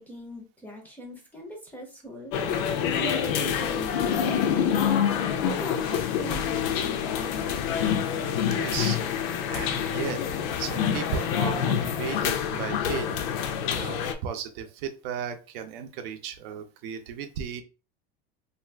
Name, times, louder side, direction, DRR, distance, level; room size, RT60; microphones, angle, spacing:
voice 1, 0.0-4.8 5.1-7.6, right 1 dB, 5° left, 0 dB, 0.5 m, -41 dB
sound 1, 2.3-14.1, left 8 dB, 65° left, 0.6 m, -27 dB
voice 2, 8.5-9.0 9.5-10.2 10.6-13.2 13.7-17.6, right 7 dB, 65° right, 7 dB, 0.6 m, -35 dB
2.6 x 2.4 x 3.3 m, 0.32 s
supercardioid pair, 160°, 30 cm